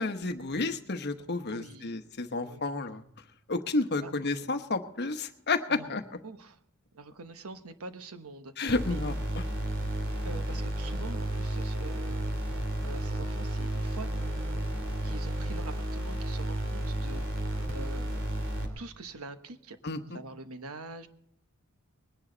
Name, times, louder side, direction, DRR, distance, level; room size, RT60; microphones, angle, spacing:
voice 1, 0.0-3.0 3.5-6.0 8.6-9.4 19.8-20.2, left 3 dB, 50° left, 8 dB, 1.1 m, -31 dB
voice 2, 1.5-1.9 2.4-2.6 4.0-4.1 5.7-6.0 6.2-6.6 6.9-9.0 10.2-12.3 12.8-14.1 15.0-17.2 17.7-18.2 18.6-19.8 20.1-21.1, right 3 dB, 90° right, 9 dB, 1.1 m, -44 dB
sound 1, 8.7-18.7, right 1 dB, 60° right, 3.2 m, -32 dB
21.0 x 10.5 x 3.9 m, 0.77 s
head